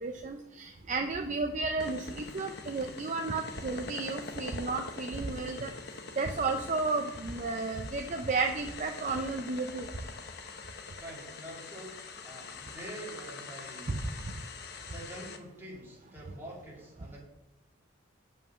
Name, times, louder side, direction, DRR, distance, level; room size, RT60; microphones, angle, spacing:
voice 1, 0.0-5.7 6.2-9.9 13.9-14.0, right 3 dB, 35° right, 5 dB, 0.5 m, -33 dB
sound 1, 1.8-15.4, left 4 dB, 50° left, 0.8 m, -44 dB
voice 2, 10.9-14.0 14.9-17.2, right 1 dB, 10° right, -4 dB, 2.3 m, -46 dB
7.4 x 5.4 x 6.6 m, 0.93 s
head